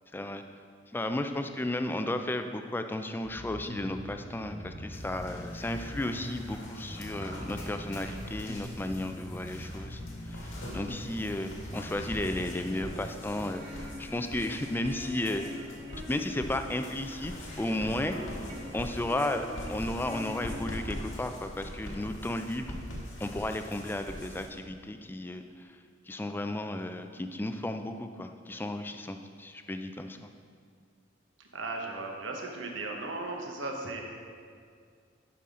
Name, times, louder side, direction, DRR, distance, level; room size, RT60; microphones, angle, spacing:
voice 1, 0.1-0.4 0.9-10.0 10.3-15.4 16.1-18.2 18.7-22.8 23.2-25.7 26.1-30.3, left 1 dB, 10° left, 7 dB, 0.3 m, -34 dB
Bass guitar, 3.2-12.8, equal, 30° left, 0.9 m, -42 dB
sound 1, 4.9-24.5, left 1 dB, 85° left, 1.9 m, -43 dB
sound 2, 13.3-21.3, left 1 dB, 30° right, 1.2 m, -45 dB
voice 2, 31.4-34.0, right 2 dB, 75° right, 1 dB, 1.1 m, -36 dB
11.5 x 5.7 x 3.7 m, 2.2 s
head